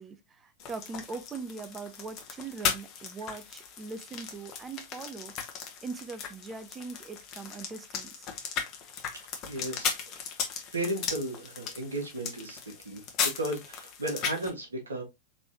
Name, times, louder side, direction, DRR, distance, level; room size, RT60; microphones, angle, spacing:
voice 1, 0.0-5.5 5.8-8.3, right 4 dB, 20° right, 0.7 m, -41 dB
sound 1, 0.6-14.5, left 7 dB, 40° left, 1.2 m, -37 dB
voice 2, 9.5-10.2 10.7-15.0, right 1 dB, 80° right, 1.6 m, -35 dB
4.1 x 3.4 x 2.8 m
figure-of-eight pair, 95°, 0 cm